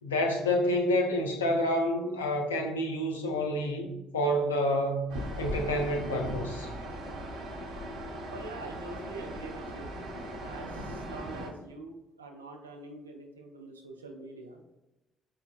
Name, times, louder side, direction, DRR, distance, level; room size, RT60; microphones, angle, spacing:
voice 1, 0.0-5.0 5.4-6.7, left 1 dB, 85° left, 3 dB, 0.4 m, -28 dB
sound 1, 5.1-11.5, equal, 70° right, 0.7 m, -38 dB
voice 2, 8.3-9.9 10.4-14.6, right 2 dB, 90° right, 2 dB, 0.3 m, -45 dB
4.6 x 2.1 x 2.3 m, 0.95 s
figure-of-eight pair, 45°, 0 cm